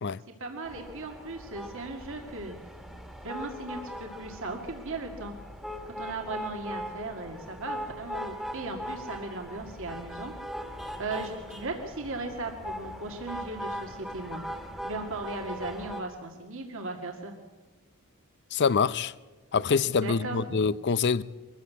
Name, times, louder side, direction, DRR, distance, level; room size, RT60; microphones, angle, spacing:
voice 1, 0.4-2.6 3.2-5.3 6.0-10.3 11.0-14.5 14.8-17.4 20.0-20.4, right 2 dB, 65° right, 2.1 m, -37 dB
sound 1, 0.7-16.0, equal, ahead, 1.8 m, -40 dB
voice 2, 18.5-19.1 19.5-21.2, left 5 dB, 50° left, 0.6 m, -25 dB
23.5 x 14.5 x 8.4 m
head